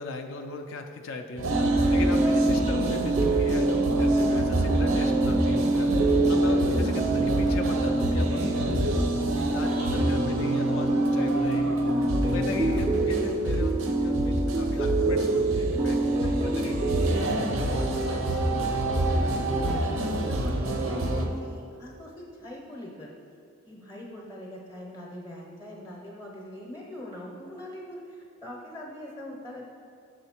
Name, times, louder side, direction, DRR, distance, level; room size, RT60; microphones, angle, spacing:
voice 1, 0.0-11.8 12.2-16.9, left 3 dB, 65° left, 5 dB, 0.4 m, -37 dB
sound 1, 1.4-21.3, right 1 dB, 85° right, 0.6 m, -28 dB
sound 2, 1.5-17.1, right 2 dB, 20° right, 0.3 m, -26 dB
voice 2, 6.1-6.5 6.8-7.0 9.3-9.9 12.5-12.6 13.0-13.1 16.1-16.5 16.9-23.1 23.6-29.7, left 1 dB, 20° left, -3 dB, 0.7 m, -41 dB
6.4 x 3.9 x 4.3 m, 2.5 s
head